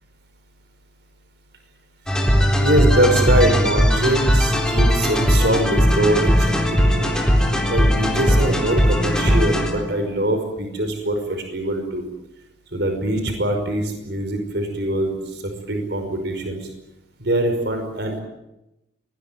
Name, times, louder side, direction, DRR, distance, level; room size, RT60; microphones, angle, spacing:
sound 1, 2.1-10.0, equal, 5° left, 3.8 m, -18 dB
voice 1, 2.6-7.1 7.7-12.1 12.7-16.7 17.2-18.2, right 1 dB, 65° right, 5 dB, 5.4 m, -23 dB
24.0 x 20.5 x 9.4 m, 0.90 s
head